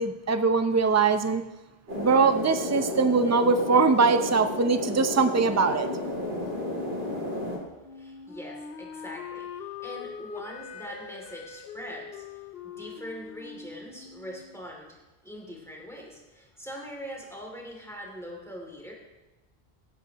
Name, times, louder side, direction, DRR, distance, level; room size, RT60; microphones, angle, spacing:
voice 1, 0.0-1.4 1.9-5.9, right 4 dB, 20° right, 9 dB, 0.5 m, -22 dB
sound 1, 1.9-7.6, left 1 dB, 80° right, 3.0 m, -32 dB
Wind instrument woodwind instrument, 7.8-14.7, left 6 dB, 70° left, 0.9 m, -42 dB
voice 2, 7.9-18.9, equal, 5° left, -1 dB, 2.6 m, -42 dB
17.5 x 9.8 x 3.0 m, 1.1 s
omnidirectional pair, 1.0 m